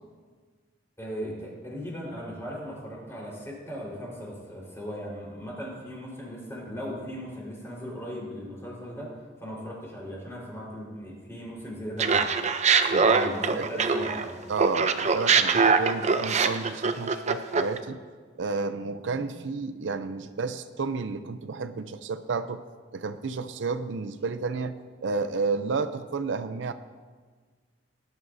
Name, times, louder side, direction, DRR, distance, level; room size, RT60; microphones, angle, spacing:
voice 1, 1.0-12.3 13.0-14.4, equal, 15° left, -4 dB, 4.2 m, -38 dB
Laughter, 12.0-14.3 14.6-17.8, right 5 dB, 40° right, 0.6 m, -23 dB
voice 2, 14.5-18.0 18.4-22.6 22.9-24.7 25.0-26.7, right 4 dB, 80° right, 10 dB, 0.5 m, -31 dB
18.5 x 11.0 x 2.7 m, 1.5 s
head